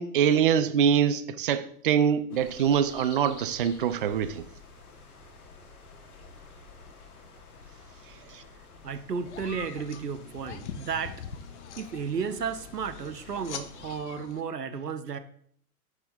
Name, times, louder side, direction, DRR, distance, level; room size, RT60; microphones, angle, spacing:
voice 1, 0.0-4.5, right 8 dB, 40° right, 0.4 m, -24 dB
sound 1, 2.3-14.0, left 4 dB, 70° left, 1.5 m, -50 dB
voice 2, 8.8-11.2 11.8-15.2, right 6 dB, 80° right, 0.8 m, -33 dB
sound 2, 9.3-14.4, left 8 dB, 50° left, 0.7 m, -43 dB
9.0 x 6.2 x 2.5 m
figure-of-eight pair, 105°, 47 cm